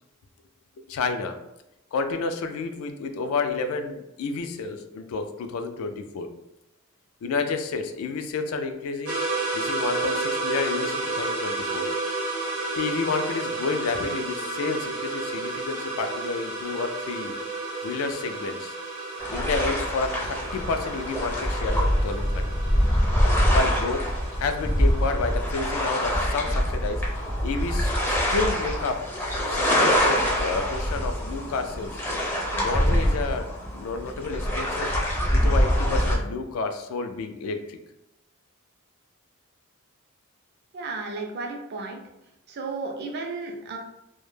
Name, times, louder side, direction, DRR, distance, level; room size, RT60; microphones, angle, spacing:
voice 1, 0.8-1.4 1.9-6.3 7.2-9.2 9.5-11.9 12.7-17.3 17.8-18.8 19.3-22.4 23.5-24.1 24.4-27.0 27.4-29.1 29.5-31.9 32.6-34.9 35.3-37.8, left 4 dB, 75° left, 8 dB, 0.3 m, -30 dB
sound 1, 9.1-25.4, right 2 dB, 75° right, 0.8 m, -32 dB
sound 2, 19.2-36.2, equal, 10° left, 0.4 m, -24 dB
voice 2, 40.7-42.0 42.5-43.8, right 3 dB, 50° right, 2 dB, 0.4 m, -33 dB
2.1 x 2.0 x 3.1 m, 0.89 s
head